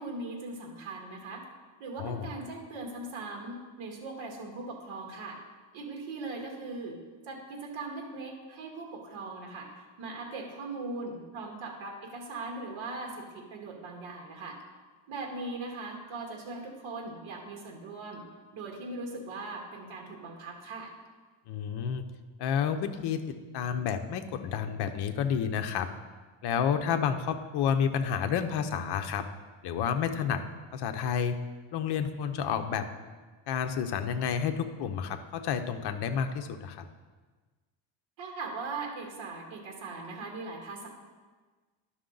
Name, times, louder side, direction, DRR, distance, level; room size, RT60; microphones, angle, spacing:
voice 1, 0.0-1.4 1.8-5.4 5.7-7.0 7.3-14.6 15.1-18.2 18.5-20.9 38.2-40.9, right 3 dB, 70° right, 1 dB, 1.8 m, -40 dB
voice 2, 21.5-22.0 22.4-25.9 26.4-29.2 29.6-30.4 30.7-31.3 31.7-32.9 33.5-36.9, left 7 dB, 55° left, 7 dB, 0.7 m, -30 dB
11.0 x 6.2 x 3.9 m, 1.3 s
cardioid pair, 170°, 48 cm